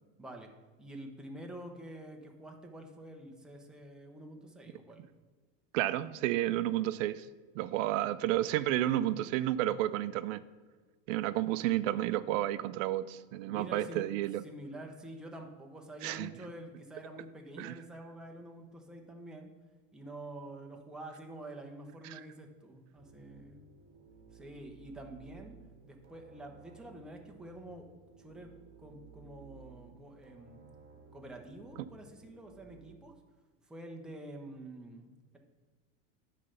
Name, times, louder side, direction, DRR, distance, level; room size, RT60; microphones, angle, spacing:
voice 1, 0.2-0.5 0.8-5.0 13.5-14.0 14.4-19.5 19.9-23.7 24.3-27.9 28.2-28.5 28.8-30.7 31.1-33.1 33.7-35.4, right 1 dB, ahead, 1 dB, 0.7 m, -47 dB
voice 2, 5.7-7.3 7.6-10.4 11.1-14.4 16.0-16.3 17.6-17.7 22.0-22.2, right 14 dB, 80° right, 14 dB, 0.5 m, -31 dB
sound 1, 23.0-33.0, right 4 dB, 25° right, 1.5 m, -57 dB
9.5 x 3.3 x 6.6 m, 1.4 s
supercardioid pair, 140°, 38 cm